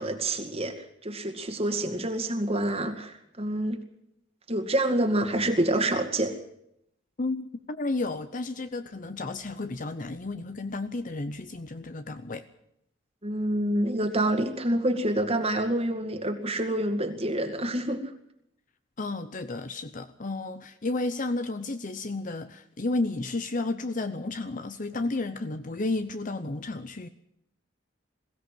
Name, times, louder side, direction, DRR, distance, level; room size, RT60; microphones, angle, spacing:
voice 1, 0.0-3.8 4.5-6.4 13.2-18.1, right 1 dB, 30° right, 5 dB, 2.1 m, -27 dB
voice 2, 7.2-12.5 19.0-27.1, left 2 dB, 45° left, 11 dB, 0.8 m, -32 dB
22.0 x 16.0 x 7.6 m, 0.77 s
head